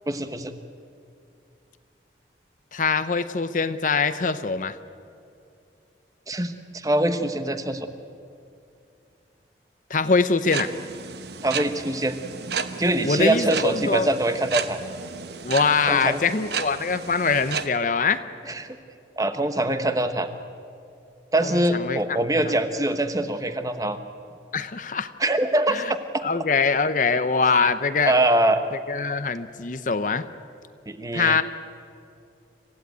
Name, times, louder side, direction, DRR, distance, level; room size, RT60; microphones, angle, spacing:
voice 1, 0.1-0.5 6.3-7.9 11.4-12.1 12.8-14.8 15.8-16.2 18.5-18.8 19.2-20.3 21.3-24.0 25.2-26.2 28.1-28.7 30.9-31.4, right 1 dB, 20° right, 8 dB, 1.1 m, -23 dB
voice 2, 2.7-4.8 9.9-10.7 13.0-14.1 15.4-18.2 21.4-22.0 24.5-25.1 25.7-25.9 26.2-28.1 28.9-30.2 31.1-31.4, left 4 dB, 45° left, 12 dB, 0.7 m, -23 dB
sound 1, 10.4-17.7, right 6 dB, 65° right, 1.1 m, -33 dB
27.0 x 16.0 x 9.3 m, 2.5 s
head